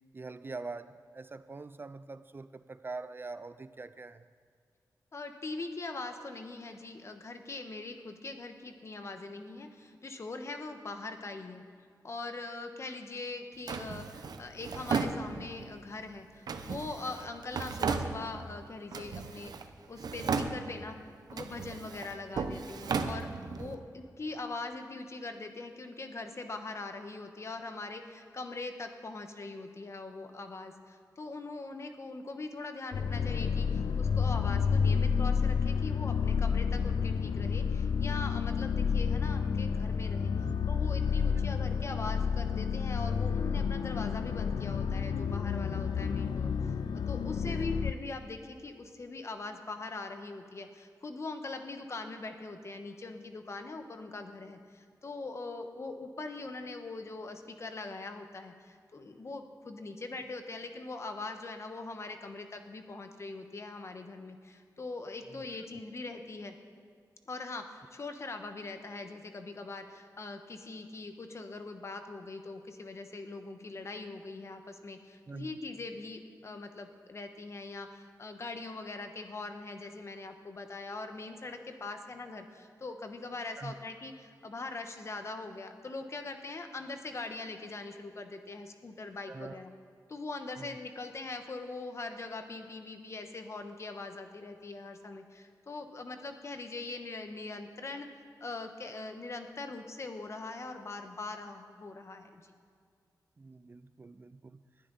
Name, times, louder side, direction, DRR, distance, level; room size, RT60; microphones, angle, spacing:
voice 1, 0.1-4.2 40.3-40.6 47.4-47.8 65.3-65.4 75.3-75.6 81.9-82.0 83.6-83.7 89.3-89.6 90.6-90.7 103.4-104.6, right 3 dB, 30° right, 13 dB, 0.4 m, -44 dB
voice 2, 5.1-11.6 12.0-21.0 21.3-23.3 23.6-66.5 67.3-89.7 90.1-98.1 98.4-102.5, left 3 dB, 45° left, 6 dB, 1.1 m, -42 dB
Drawer open or close, 13.7-15.7 16.5-18.6 18.9-19.7 20.0-20.9 21.3-23.7, right 5 dB, 70° right, 0.8 m, -35 dB
sound 1, 32.9-47.9, left 6 dB, 85° left, 0.5 m, -30 dB
20.0 x 11.0 x 4.0 m, 2.1 s
wide cardioid pair, 105°, 7 cm